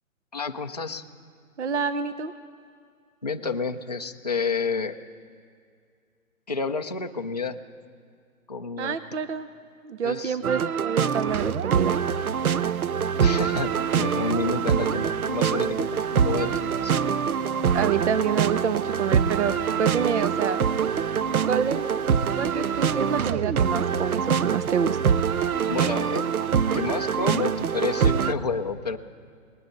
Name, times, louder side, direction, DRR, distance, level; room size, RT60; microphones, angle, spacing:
voice 1, 0.3-1.0 3.2-5.0 6.5-7.6 8.5-9.0 10.0-10.4 13.2-17.0 25.7-26.3 26.7-29.0, left 4 dB, 30° left, 3 dB, 0.4 m, -30 dB
voice 2, 1.6-2.3 8.8-9.5 9.8-12.0 17.7-20.6 21.4-21.8 22.3-25.1, right 7 dB, 55° right, 11 dB, 0.8 m, -27 dB
sound 1, 10.4-28.3, right 7 dB, 90° right, 0.7 m, -24 dB
19.0 x 19.0 x 3.9 m, 2.2 s
hypercardioid pair, 160°, 42 cm